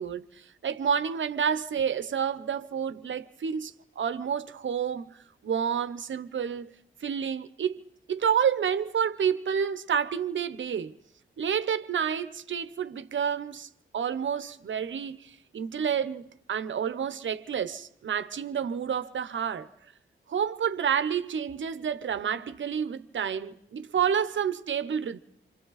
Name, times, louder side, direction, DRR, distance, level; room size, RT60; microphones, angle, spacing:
voice 1, 0.0-5.2 5.4-6.7 7.0-7.8 8.1-10.9 11.4-19.7 20.3-25.2, right 7 dB, 65° right, 0.9 m, -29 dB
27.0 x 25.5 x 4.1 m
wide cardioid pair, 100°, 21 cm